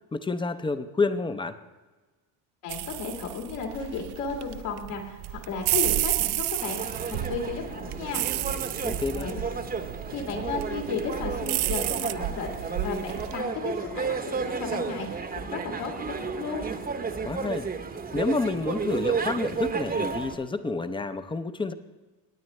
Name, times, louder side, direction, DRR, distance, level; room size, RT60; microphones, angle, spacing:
voice 1, 0.1-1.6 8.8-9.3 17.2-17.7 18.1-21.7, left 3 dB, 10° left, 11 dB, 0.4 m, -29 dB
voice 2, 2.6-8.3 9.1-9.4 10.1-16.7, left 4 dB, 80° left, 0 dB, 2.7 m, -34 dB
sound 1, 2.7-13.4, right 15 dB, 55° right, 0.5 m, -31 dB
sound 2, 6.6-20.4, right 5 dB, 20° right, 0.8 m, -32 dB
18.5 x 9.0 x 3.2 m, 1.3 s
supercardioid pair, 105°, 49 cm